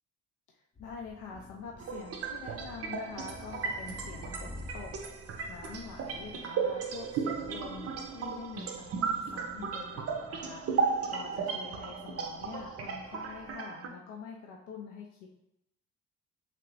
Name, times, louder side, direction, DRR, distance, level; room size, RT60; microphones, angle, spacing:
voice 1, 0.8-15.5, left 5 dB, 85° left, 0 dB, 0.5 m, -46 dB
sound 1, 0.8-13.5, left 1 dB, 25° left, 0.5 m, -51 dB
sound 2, 1.8-13.9, right 5 dB, 50° right, 0.5 m, -35 dB
2.9 x 2.4 x 3.1 m, 0.84 s
cardioid pair, 90°, 30 cm